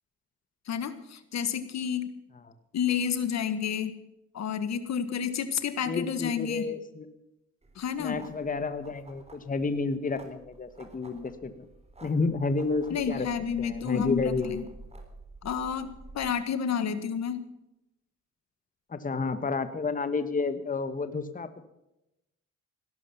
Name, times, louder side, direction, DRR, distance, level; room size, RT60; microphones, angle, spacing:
voice 1, 0.6-2.1 2.7-3.9 4.3-6.7 7.7-8.2 12.9-14.6 15.4-17.4, left 7 dB, 60° left, 12 dB, 1.6 m, -30 dB
voice 2, 5.8-7.0 8.0-11.6 12.0-13.3 13.6-14.6 18.9-21.5, left 4 dB, 25° left, 10 dB, 1.5 m, -30 dB
sound 1, 7.6-16.3, right 2 dB, 20° right, 3.6 m, -50 dB
17.5 x 12.5 x 5.7 m, 0.89 s
cardioid pair, 90°, 30 cm